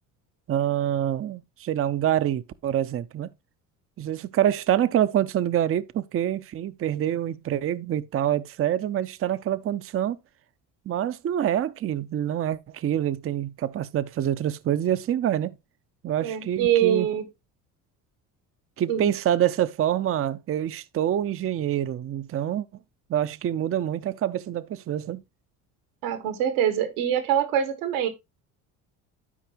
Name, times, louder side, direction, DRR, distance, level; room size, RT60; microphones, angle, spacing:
voice 1, 0.5-3.3 4.0-10.2 10.9-15.6 16.0-17.1 18.8-22.7 23.1-25.2, right 11 dB, 30° right, 0.6 m, -26 dB
voice 2, 16.2-17.3 18.9-19.1 26.0-28.1, right 10 dB, 80° right, 1.5 m, -24 dB
12.0 x 4.7 x 2.9 m
hypercardioid pair, 70°, 43 cm